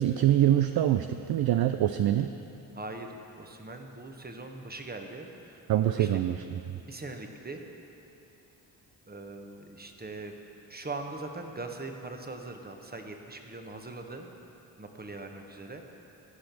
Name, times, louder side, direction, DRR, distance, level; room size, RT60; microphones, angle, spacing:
voice 1, 0.0-2.3 5.7-6.8, right 12 dB, 50° right, 8 dB, 0.5 m, -25 dB
voice 2, 2.7-5.6 6.0-6.1 6.9-7.6 9.1-10.3 10.7-14.3 14.8-15.8, right 2 dB, 20° right, 4 dB, 1.3 m, -41 dB
15.0 x 5.1 x 6.1 m, 2.9 s
hypercardioid pair, 45°, 49 cm